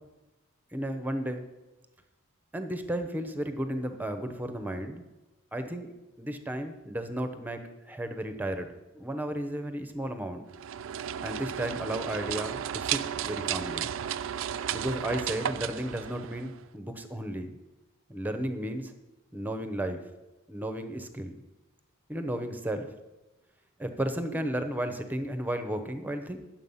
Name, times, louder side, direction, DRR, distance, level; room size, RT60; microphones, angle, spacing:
voice 1, 0.7-1.5 2.5-5.0 5.5-5.9 6.2-7.6 7.9-10.4 11.2-13.9 14.7-17.6 18.1-18.9 19.3-20.0 20.5-21.4 22.1-22.9 23.8-26.4, right 1 dB, 10° right, 7 dB, 0.8 m, -33 dB
sound 1, 10.5-16.7, right 9 dB, 65° right, 0.4 m, -34 dB
11.0 x 7.6 x 5.6 m, 1.0 s
head